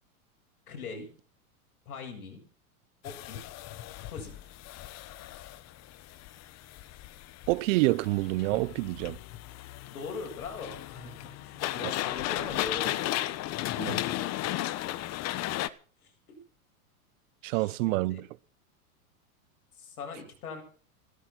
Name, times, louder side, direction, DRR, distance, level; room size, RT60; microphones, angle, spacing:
voice 1, 0.7-1.1 1.9-2.4 3.0-3.4 4.0-4.5 9.9-13.1 16.0-16.4 17.4-18.2 19.8-20.6, left 5 dB, 85° left, 7.8 m, -41 dB
sound 1, 3.0-15.7, left 15 dB, 35° left, 1.1 m, -35 dB
voice 2, 7.5-9.2 13.8-14.0 17.4-18.3, right 20 dB, 60° right, 0.8 m, -27 dB
17.0 x 13.0 x 6.1 m
hypercardioid pair, 120°, 44 cm